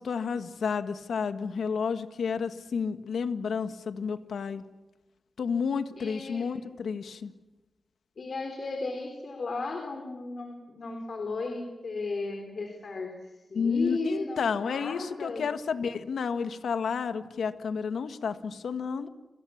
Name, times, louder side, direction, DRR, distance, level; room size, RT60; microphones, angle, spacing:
voice 1, 0.0-4.6 5.4-7.3 13.5-19.1, left 6 dB, 85° left, 10 dB, 1.6 m, -31 dB
voice 2, 6.0-6.5 8.2-15.5, left 3 dB, 55° left, 4 dB, 3.9 m, -35 dB
28.0 x 27.5 x 7.2 m, 1.1 s
wide cardioid pair, 120°, 0 cm